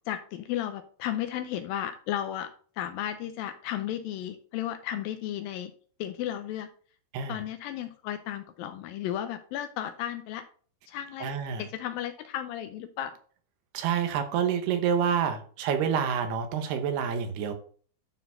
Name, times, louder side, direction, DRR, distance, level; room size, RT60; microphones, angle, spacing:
voice 1, 0.1-2.5 2.8-5.7 6.0-6.7 7.3-10.4 10.9-11.3 11.6-13.1, left 11 dB, 80° left, 8 dB, 2.2 m, -34 dB
voice 2, 11.2-11.6 13.7-17.5, right 7 dB, 90° right, 7 dB, 3.2 m, -28 dB
11.5 x 4.3 x 4.0 m, 0.43 s
omnidirectional pair, 4.5 m